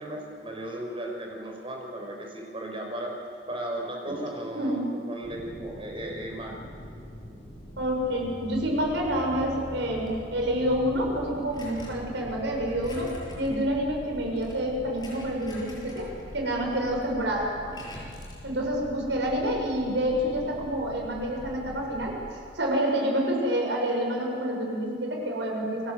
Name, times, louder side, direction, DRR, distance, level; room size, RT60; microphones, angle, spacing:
voice 1, 0.0-3.2 3.5-6.6, right 1 dB, 30° right, 1 dB, 5.8 m, -36 dB
voice 2, 4.5-4.9 7.8-17.8 18.4-25.9, equal, 75° right, 0 dB, 7.3 m, -28 dB
sound 1, 5.2-22.2, equal, 45° left, 5.7 m, -45 dB
sound 2, 5.4-14.2, equal, 15° right, 5.9 m, -45 dB
sound 3, 10.0-10.3 11.5-12.2 12.7-13.6 14.2-16.6 17.0-17.1 17.7-18.5, left 1 dB, 25° left, 7.8 m, -46 dB
29.5 x 21.0 x 8.2 m, 2.5 s
head